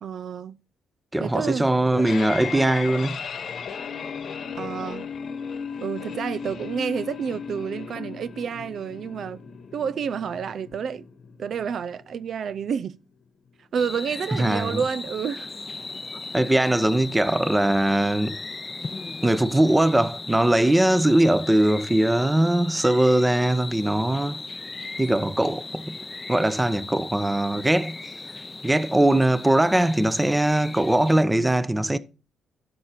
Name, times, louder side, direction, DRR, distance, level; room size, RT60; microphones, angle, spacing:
voice 1, 0.0-0.6 1.2-1.7 4.5-5.1 5.8-9.4 9.7-11.0 11.4-13.0 13.6-15.5, right 7 dB, 60° right, 0.4 m, -29 dB
voice 2, 1.1-3.2 14.4-14.8 16.3-18.4 19.2-24.4 25.0-26.0 26.3-28.0 28.6-32.0, right 1 dB, 10° right, 0.8 m, -21 dB
sound 1, 1.7-12.7, left 6 dB, 55° left, 1.1 m, -36 dB
sound 2, 13.7-31.2, left 3 dB, 25° left, 0.6 m, -37 dB
12.0 x 6.6 x 4.3 m
cardioid pair, 90°, 0 cm